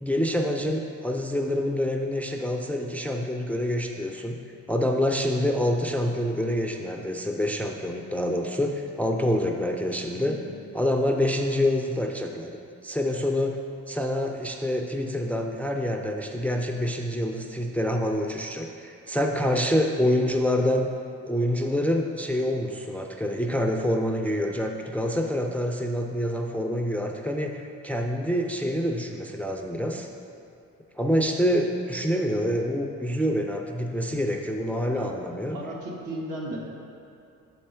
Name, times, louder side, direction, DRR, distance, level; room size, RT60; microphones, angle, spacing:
voice 1, 0.0-4.4 4.7-10.4 10.7-12.5 12.8-13.6 13.9-20.9 21.3-30.1 31.0-35.6, equal, 5° left, 2 dB, 0.3 m, -26 dB
voice 2, 10.2-10.5 34.9-35.1 35.5-36.6, right 1 dB, 75° right, -3 dB, 1.4 m, -35 dB
6.6 x 4.4 x 4.3 m, 2.6 s
cardioid pair, 90°, 30 cm